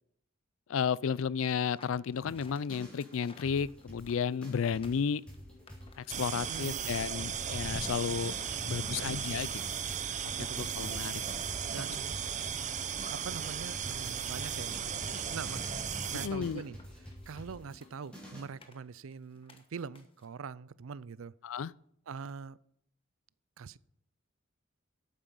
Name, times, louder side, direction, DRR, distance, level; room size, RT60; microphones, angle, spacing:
voice 1, 0.7-5.2 6.0-8.3 8.6-9.5 10.2-10.3 10.6-11.2 16.1-16.6 21.4-21.7, left 6 dB, 75° left, 0.4 m, -33 dB
sound 1, 1.6-6.6 6.9-20.3, left 3 dB, 25° left, 1.2 m, -59 dB
sound 2, 2.2-18.4, equal, 5° left, 4.1 m, -47 dB
sound 3, 6.1-16.3, right 8 dB, 35° right, 0.7 m, -36 dB
voice 2, 6.5-6.9 8.9-9.5 10.4-10.9 11.7-12.2 13.1-16.8 17.3-21.3 22.1-22.6 23.6-23.8, right 5 dB, 80° right, 0.5 m, -44 dB
12.0 x 8.8 x 5.5 m
head